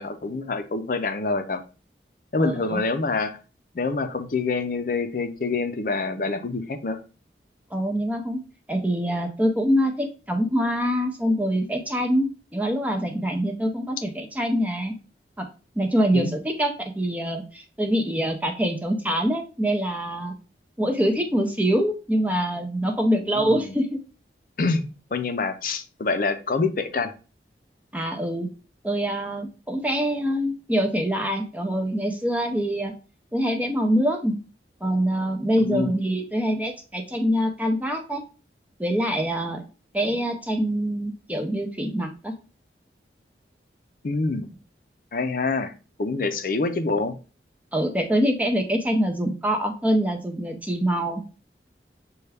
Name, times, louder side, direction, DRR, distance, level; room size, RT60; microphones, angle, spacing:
voice 1, 0.0-1.6 2.3-3.4 3.7-7.0 16.1-16.3 23.3-23.8 24.6-24.8 25.1-27.1 35.6-36.0 44.0-44.5 45.1-45.7 46.0-47.1, left 3 dB, 50° left, 0.5 m, -26 dB
voice 2, 2.4-2.8 7.7-8.4 8.7-15.0 15.4-15.5 15.8-20.3 20.8-24.0 27.9-28.5 28.8-32.9 33.3-34.4 34.8-38.2 38.8-39.6 39.9-42.3 47.7-51.2, equal, 10° right, 0.5 m, -24 dB
6.6 x 2.3 x 3.3 m
head